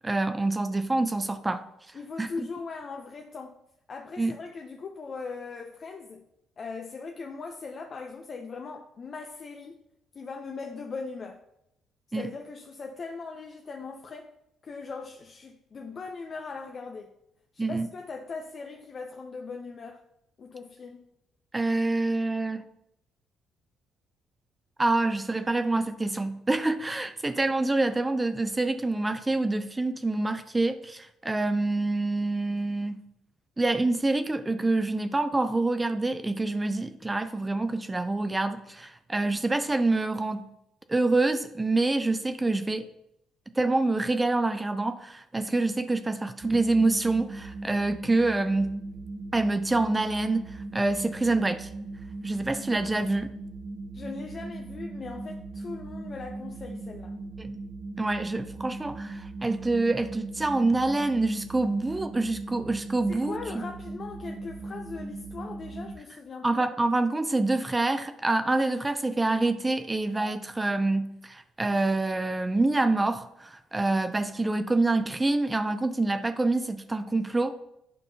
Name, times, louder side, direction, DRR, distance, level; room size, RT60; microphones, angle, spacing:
voice 1, 0.0-1.6 2.2-2.3 4.2-4.4 12.1-12.3 17.6-17.9 21.5-22.6 24.8-33.0 33.6-40.5 40.9-42.9 43.6-48.8 49.3-51.7 52.2-53.3 57.4-57.5 58.0-63.7 66.4-77.5, right 2 dB, 20° right, 0.4 m, -26 dB
voice 2, 1.9-3.6 3.9-6.2 6.6-9.8 10.1-11.4 12.1-14.3 14.6-17.1 17.5-20.0 20.4-21.1 53.9-57.2 63.1-66.6, left 4 dB, 45° left, 0.6 m, -39 dB
sound 1, 46.4-66.0, right 2 dB, 45° right, 0.9 m, -39 dB
9.0 x 5.3 x 2.7 m
supercardioid pair, 75°, 0 cm